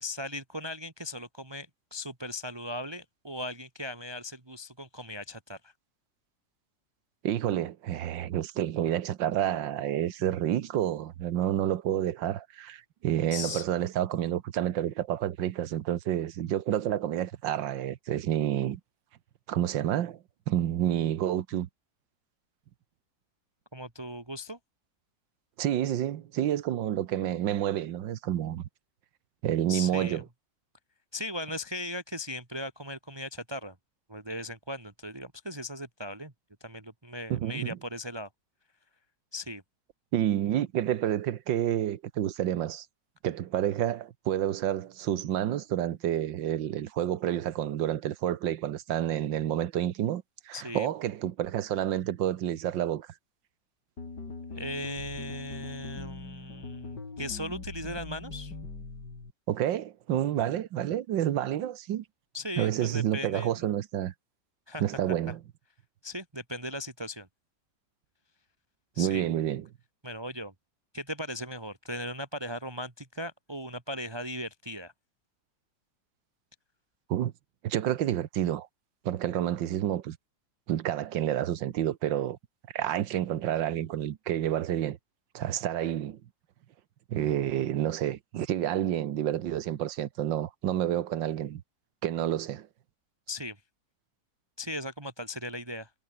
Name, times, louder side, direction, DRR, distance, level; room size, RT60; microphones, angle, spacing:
voice 1, 0.0-5.7 13.3-13.7 23.7-24.6 29.7-30.2 31.1-33.8 34.1-36.3 36.6-38.3 39.3-39.6 50.5-50.9 54.5-58.5 62.3-63.7 64.7-64.8 66.0-67.3 68.9-69.3 70.0-70.5 70.9-74.9 93.3-93.6 94.6-95.9, left 1 dB, 15° right, 1.9 m, -38 dB
voice 2, 7.2-18.8 19.5-20.2 20.5-21.7 25.6-28.6 29.4-30.2 37.3-37.8 40.1-42.9 43.2-53.1 59.5-62.0 62.6-64.1 64.8-65.4 69.0-69.7 77.1-77.3 77.6-78.7 79.0-80.2 80.7-82.4 82.7-85.0 85.3-86.2 87.1-91.6 92.0-92.7, right 11 dB, 85° right, 1.7 m, -29 dB
sound 1, 54.0-59.3, left 3 dB, 70° left, 4.7 m, -41 dB
omnidirectional pair, 1.9 m